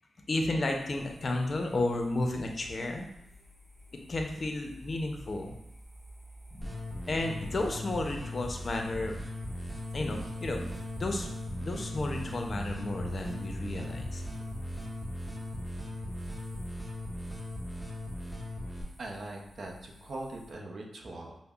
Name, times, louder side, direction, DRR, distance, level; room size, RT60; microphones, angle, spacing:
voice 1, 0.3-3.1 4.1-5.6 6.5-6.7 7.1-9.2 9.9-10.6 11.0-11.3 11.6-14.2, left 2 dB, 45° left, 3 dB, 0.5 m, -32 dB
sound 1, 0.7-20.5, equal, 25° right, 0.9 m, -52 dB
sound 2, 6.6-18.8, left 1 dB, ahead, 0.6 m, -38 dB
voice 2, 19.0-21.4, right 2 dB, 60° right, 0 dB, 0.6 m, -41 dB
5.3 x 2.0 x 2.3 m, 0.80 s
cardioid pair, 75°, 0 cm